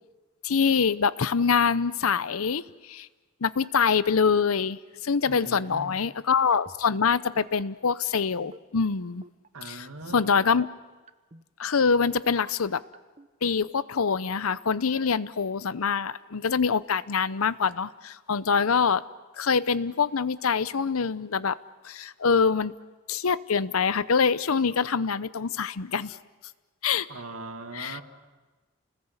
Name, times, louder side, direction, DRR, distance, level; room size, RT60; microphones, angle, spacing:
voice 1, 0.4-3.1 3.4-9.2 9.7-9.9 10.1-10.7 11.6-12.8 13.4-19.0 19.4-21.6 21.8-22.7 23.1-26.2 26.8-27.1 27.7-28.0, left 5 dB, 85° left, 17 dB, 0.7 m, -25 dB
voice 2, 5.3-6.0 9.5-10.4 27.1-28.0, right 2 dB, 80° right, 7 dB, 2.1 m, -40 dB
sound 1, 6.5-7.0 7.4-7.6 8.4-8.9 9.2-9.5 10.2-10.7 11.1-11.4 12.1-12.5 12.9-13.3, right 2 dB, 30° right, 0.8 m, -48 dB
29.5 x 20.5 x 8.1 m, 1.2 s
head